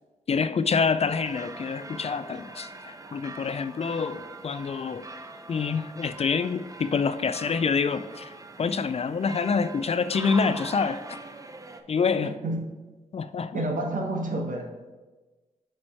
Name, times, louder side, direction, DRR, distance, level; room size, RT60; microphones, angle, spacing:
voice 1, 0.3-5.1 5.5-11.0 11.9-12.4 13.1-13.6, left 5 dB, 45° left, 0.4 m, -27 dB
sound 1, 1.1-11.8, right 2 dB, 25° right, 0.6 m, -42 dB
voice 2, 12.2-12.7 13.5-14.7, right 1 dB, 65° right, 1.2 m, -29 dB
8.4 x 3.1 x 4.3 m
cardioid pair, 45°, 15 cm